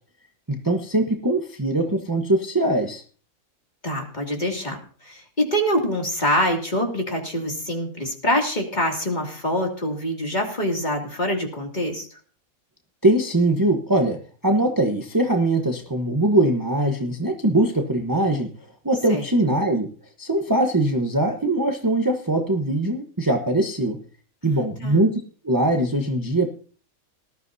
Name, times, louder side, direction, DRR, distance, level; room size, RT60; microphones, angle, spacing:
voice 1, 0.5-3.0 13.0-14.2 14.4-18.5 18.8-19.9 20.2-24.0 24.4-26.5, right 1 dB, 15° right, 3 dB, 1.0 m, -21 dB
voice 2, 3.8-12.1 19.1-19.2 24.8-25.0, equal, 30° left, 1 dB, 2.7 m, -25 dB
19.0 x 13.0 x 2.7 m, 0.41 s
omnidirectional pair, 1.5 m